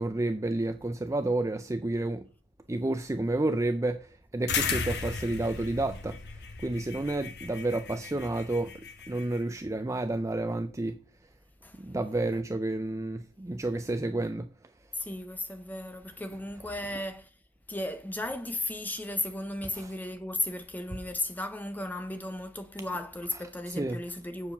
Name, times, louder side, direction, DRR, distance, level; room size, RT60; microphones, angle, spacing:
voice 1, 0.0-2.2 2.7-4.0 4.3-6.2 6.6-8.7 9.1-10.9 11.8-14.4 23.7-24.0, right 2 dB, 15° right, 0.4 m, -30 dB
sound 1, 4.5-9.4, left 5 dB, 55° left, 1.0 m, -35 dB
voice 2, 14.9-17.3 17.7-24.5, left 1 dB, 10° left, 0.7 m, -35 dB
7.1 x 4.8 x 6.8 m
head